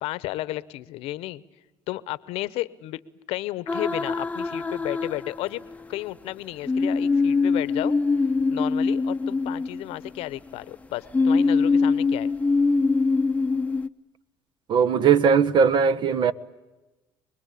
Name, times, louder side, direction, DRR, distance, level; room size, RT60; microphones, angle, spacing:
voice 1, 0.0-1.4 1.9-3.0 3.3-7.9 8.5-12.3, left 16 dB, 75° left, 1.0 m, -33 dB
sound 1, 3.7-5.8 6.7-10.4 11.1-13.9, left 4 dB, 15° left, 0.8 m, -23 dB
voice 2, 14.7-16.3, right 6 dB, 50° right, 1.1 m, -19 dB
25.5 x 21.0 x 8.5 m
supercardioid pair, 90°, 10 cm